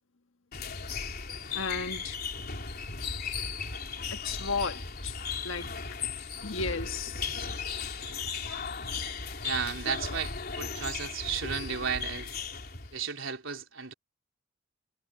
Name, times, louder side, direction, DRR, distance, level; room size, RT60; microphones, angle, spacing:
sound 1, 0.5-13.0, left 5 dB, 50° left, 3.7 m, -36 dB
voice 1, 1.5-2.2 4.1-5.2 5.4-5.7 6.4-7.6, left 4 dB, 85° left, 1.5 m, -34 dB
voice 2, 9.4-12.3 12.9-13.9, right 6 dB, 75° right, 4.0 m, -34 dB
head